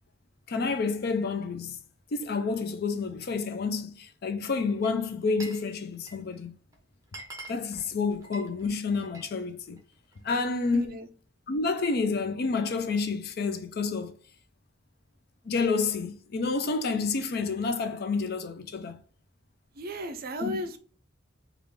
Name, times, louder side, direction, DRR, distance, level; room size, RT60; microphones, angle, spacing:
voice 1, 0.5-1.8 2.1-6.6 7.5-9.8 10.2-10.8 11.5-14.1 15.4-19.0 20.4-20.6, left 4 dB, 55° left, 0.4 m, -29 dB
Glass, 4.7-5.7 5.9-6.4 6.7-6.8 7.0-9.3 9.7-10.4, right 2 dB, 15° right, 0.7 m, -46 dB
voice 2, 10.7-11.1 19.7-20.8, equal, 50° right, 0.5 m, -35 dB
3.5 x 2.4 x 3.1 m
head